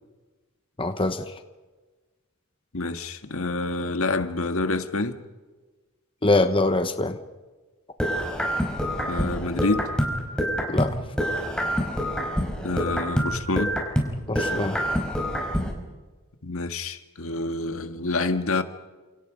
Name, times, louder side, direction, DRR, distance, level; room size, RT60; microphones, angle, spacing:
voice 1, 0.8-1.2 6.2-7.2 10.7-11.0 14.3-14.8, left 2 dB, 25° left, 1.1 m, -23 dB
voice 2, 2.7-5.2 9.1-9.9 12.6-13.7 16.4-18.6, left 2 dB, 65° left, 1.8 m, -27 dB
sound 1, 8.0-10.9 11.2-14.1 14.4-15.7, equal, 5° left, 5.0 m, -26 dB
29.5 x 28.0 x 5.2 m
head